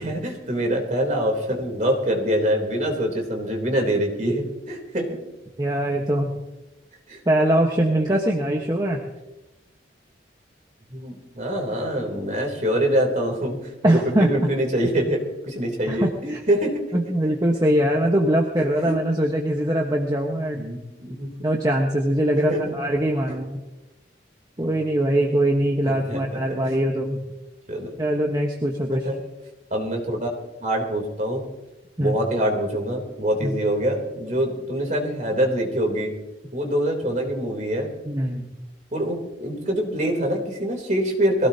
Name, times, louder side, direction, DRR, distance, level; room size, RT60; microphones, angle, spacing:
voice 1, 0.0-5.2 7.1-7.2 10.9-16.8 20.5-21.3 22.3-22.8 24.6-24.8 25.9-26.4 27.7-27.9 29.1-29.2 29.7-30.3 30.6-31.4 32.0-36.1 36.5-37.9 38.9-41.5, equal, 40° right, 2 dB, 3.4 m, -25 dB
voice 2, 5.6-6.3 7.2-9.0 13.8-14.3 15.9-16.4 16.9-20.7 21.4-23.6 24.6-27.2 28.0-29.1 32.0-32.1 33.4-33.6 38.0-38.5, right 1 dB, 20° right, 0 dB, 1.3 m, -22 dB
22.5 x 16.5 x 2.9 m, 1.0 s
head